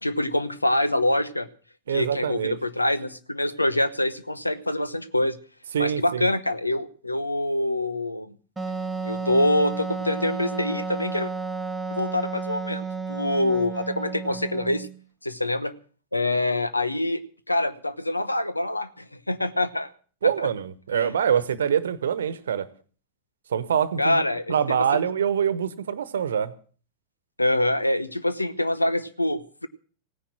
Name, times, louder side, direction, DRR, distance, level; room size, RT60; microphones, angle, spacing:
voice 1, 0.0-1.5 1.9-5.4 5.8-8.3 9.0-11.3 11.9-14.9 15.2-15.7 16.1-17.2 17.5-19.9 20.2-20.5 20.9-21.1 24.0-24.9 27.4-29.7, left 1 dB, 85° left, 14 dB, 1.0 m, -25 dB
voice 2, 1.9-2.6 5.7-6.3 20.2-22.7 23.5-24.2 24.5-26.5, right 8 dB, 65° right, 17 dB, 1.1 m, -25 dB
Wind instrument woodwind instrument, 8.6-15.0, right 4 dB, 10° right, 1.1 m, -32 dB
17.0 x 10.0 x 7.3 m, 0.41 s
figure-of-eight pair, 90°, 0 cm